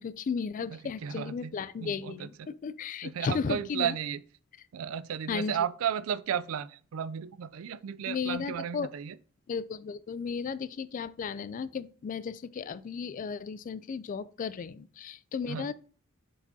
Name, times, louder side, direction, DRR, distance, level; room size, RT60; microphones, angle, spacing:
voice 1, 0.0-4.0 5.3-5.6 8.1-8.9 9.5-15.7, left 5 dB, 40° left, 0.3 m, -35 dB
voice 2, 0.7-1.5 1.8-2.5 3.0-4.2 4.7-9.1 15.5-15.7, right 8 dB, 80° right, 0.4 m, -34 dB
7.0 x 5.0 x 2.7 m
head